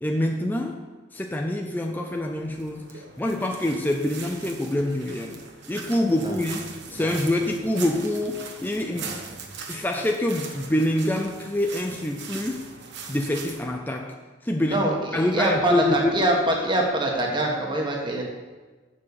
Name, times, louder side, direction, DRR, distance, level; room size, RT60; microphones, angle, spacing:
voice 1, 0.0-0.8 1.1-5.4 5.7-6.6 6.9-9.1 9.7-12.7 13.1-14.1 14.4-14.8 15.1-16.3, left 1 dB, 10° left, 3 dB, 0.5 m, -26 dB
sound 1, 2.1-13.7, right 5 dB, 55° right, 1.2 m, -41 dB
voice 2, 14.7-18.2, right 1 dB, 25° right, -1 dB, 1.5 m, -24 dB
7.7 x 7.2 x 6.7 m, 1.3 s
head